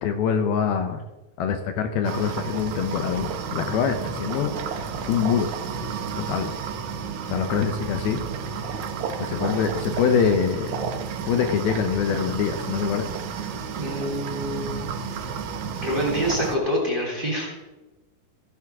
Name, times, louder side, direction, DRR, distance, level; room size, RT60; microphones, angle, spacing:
voice 1, 0.0-1.0 1.4-4.8 5.1-5.5 6.2-6.5 7.3-8.2 9.2-10.8 11.3-13.1, left 7 dB, 75° left, 6 dB, 2.6 m, -24 dB
sound 1, 2.0-16.6, right 6 dB, 75° right, 1.7 m, -31 dB
voice 2, 13.7-14.8 15.8-17.5, equal, 15° right, -3 dB, 3.3 m, -26 dB
16.0 x 12.5 x 3.6 m, 1.1 s
omnidirectional pair, 4.7 m